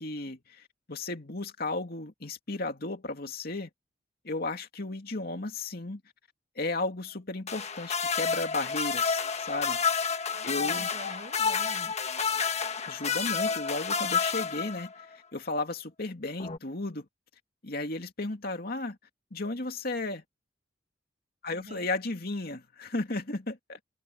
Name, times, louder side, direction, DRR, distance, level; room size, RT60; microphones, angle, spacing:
voice 1, 0.0-3.7 4.2-6.0 6.6-9.8 10.4-10.9 12.8-15.1 15.3-17.0 17.6-19.0 19.3-20.2 21.4-23.8, left 2 dB, 55° left, 2.6 m, -34 dB
sound 1, 7.5-15.0 16.4-16.6, left 6 dB, 35° left, 1.3 m, -30 dB
voice 2, 10.3-11.9 21.5-21.9, right 2 dB, 40° right, 6.0 m, -47 dB
head